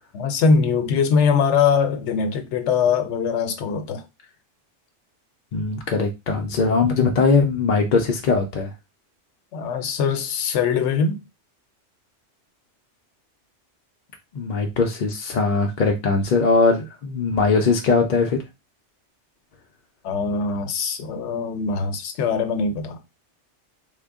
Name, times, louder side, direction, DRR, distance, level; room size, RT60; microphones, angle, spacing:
voice 1, 0.1-4.0 9.5-11.2 20.0-23.0, left 5 dB, 80° left, 0.9 m, -22 dB
voice 2, 5.5-8.7 14.3-18.4, left 4 dB, 55° left, 0.5 m, -20 dB
3.7 x 2.0 x 3.5 m
omnidirectional pair, 1.2 m